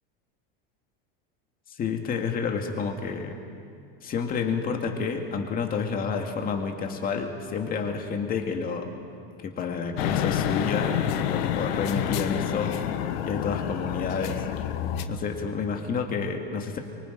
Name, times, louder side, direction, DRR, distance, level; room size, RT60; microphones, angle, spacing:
voice 1, 1.8-3.3 4.0-8.9 9.4-12.8 13.2-14.4 15.1-16.8, left 5 dB, 30° left, 3 dB, 2.2 m, -29 dB
sound 1, 10.0-15.1, left 10 dB, 75° left, 1.3 m, -28 dB
24.0 x 24.0 x 5.2 m, 2.4 s
supercardioid pair, 140°, 30 cm